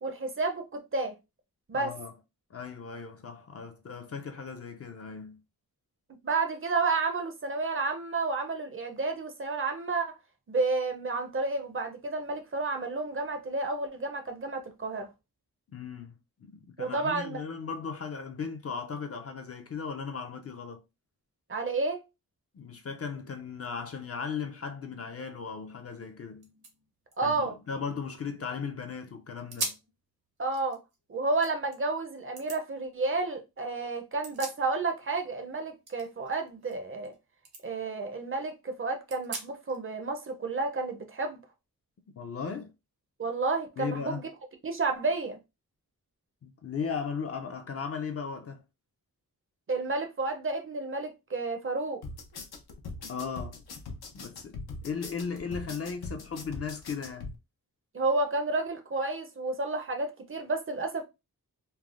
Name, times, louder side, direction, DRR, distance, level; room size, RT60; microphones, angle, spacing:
voice 1, 0.0-1.1 1.7-1.9 6.2-10.1 10.5-15.1 16.8-17.4 21.5-22.0 27.2-27.6 30.4-30.8 31.1-37.1 37.6-41.4 43.2-44.3 44.6-45.4 49.7-52.0 57.9-61.0, right 3 dB, 35° right, 0.5 m, -31 dB
voice 2, 1.7-2.1 2.5-5.4 15.7-20.8 22.5-26.5 27.2-29.7 42.2-42.7 43.8-44.2 46.4-48.6 53.1-53.6 54.1-57.3, left 6 dB, 40° left, 0.4 m, -37 dB
sound 1, 26.0-26.1 26.4-28.6 29.0-29.1 29.5-29.9 30.4-31.8 32.4-32.6 33.9-35.1 35.3-37.2 37.4-37.6 38.1-38.2 39.1-39.8, right 3 dB, 75° right, 0.8 m, -41 dB
sound 2, 52.0-57.3, left 3 dB, 85° left, 0.6 m, -41 dB
3.2 x 2.0 x 2.3 m
wide cardioid pair, 105°, 37 cm